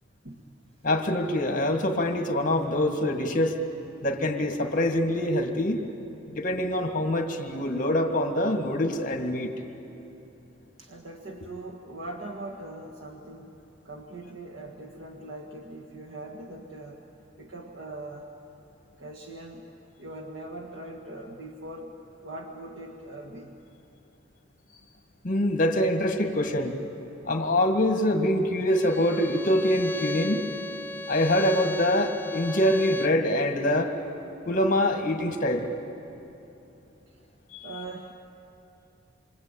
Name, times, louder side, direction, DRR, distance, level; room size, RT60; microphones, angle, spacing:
voice 1, 0.8-3.5 4.0-5.8 6.4-9.5 11.4-11.5 25.2-26.7 27.3-30.4 31.1-33.9 34.5-35.7 37.5-37.7, left 1 dB, 45° left, 5 dB, 2.0 m, -25 dB
voice 2, 10.8-17.0 17.4-18.3 19.0-19.7 20.0-21.9 22.2-23.6 36.0-36.2 37.1-37.3 37.6-38.1, right 2 dB, 85° right, 0 dB, 1.7 m, -41 dB
Bowed string instrument, 28.7-33.2, left 1 dB, 10° left, 0.6 m, -35 dB
27.5 x 24.5 x 8.9 m, 2.9 s
head